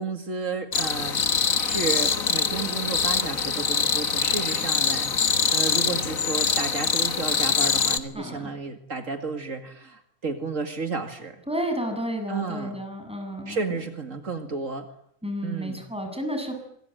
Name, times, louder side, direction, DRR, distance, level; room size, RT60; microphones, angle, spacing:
voice 1, 0.0-11.4 12.3-12.8 13.5-14.9 15.4-15.8, right 4 dB, 70° right, 7 dB, 2.5 m, -32 dB
sound 1, 0.7-8.0, left 5 dB, 85° left, 2.0 m, -24 dB
voice 2, 8.1-8.5 11.5-13.6 15.2-16.6, equal, 5° right, 4 dB, 7.5 m, -31 dB
26.5 x 22.5 x 9.2 m, 0.71 s
omnidirectional pair, 1.4 m